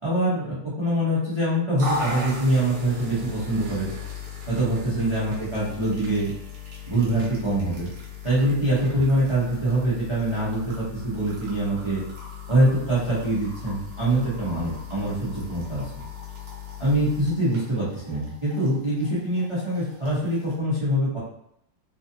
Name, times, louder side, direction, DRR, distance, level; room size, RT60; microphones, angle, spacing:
voice 1, 0.0-3.9 4.5-6.3 6.9-7.9 8.2-12.0 12.5-15.9 16.8-21.2, right 1 dB, 40° right, -9 dB, 0.4 m, -24 dB
sound 1, 1.8-20.6, left 4 dB, 65° right, 1.3 m, -38 dB
3.1 x 2.6 x 2.6 m, 0.74 s
omnidirectional pair, 2.0 m